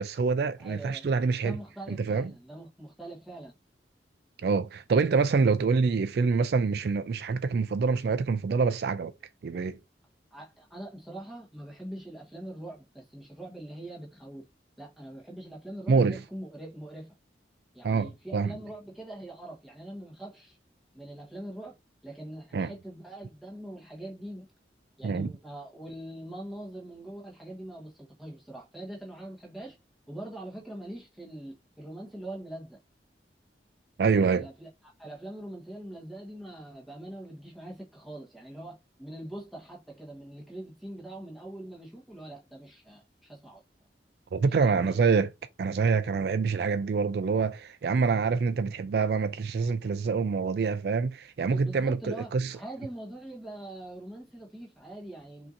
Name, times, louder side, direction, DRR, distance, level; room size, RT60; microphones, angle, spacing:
voice 1, 0.0-1.6 1.9-2.3 4.4-9.1 9.4-9.8 15.9-16.2 17.8-18.6 22.5-22.7 25.0-25.3 34.0-34.5 44.3-45.3 45.6-52.6, right 5 dB, 60° right, 0.3 m, -26 dB
voice 2, 0.6-1.1 1.4-3.5 10.3-14.4 14.8-17.1 17.7-20.6 20.9-21.7 22.0-24.5 25.0-29.8 30.1-32.8 34.4-34.7 35.0-43.6 44.5-45.0 51.4-55.5, right 1 dB, ahead, 1.3 m, -43 dB
5.7 x 2.8 x 2.6 m
head